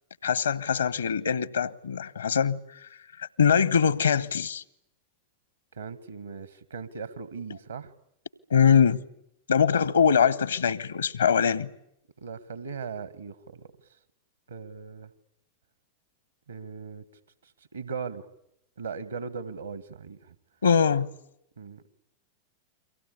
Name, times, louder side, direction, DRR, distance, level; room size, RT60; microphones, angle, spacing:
voice 1, 0.2-2.9 3.2-4.6 8.5-9.0 9.5-11.7 20.6-21.1, left 7 dB, 70° left, 1.1 m, -23 dB
voice 2, 5.7-7.9 12.2-13.7 14.5-15.1 16.5-17.0 17.4-18.3 18.8-20.4 21.6-21.8, right 5 dB, 75° right, 1.8 m, -38 dB
30.0 x 24.0 x 8.4 m
figure-of-eight pair, 90°, 0 cm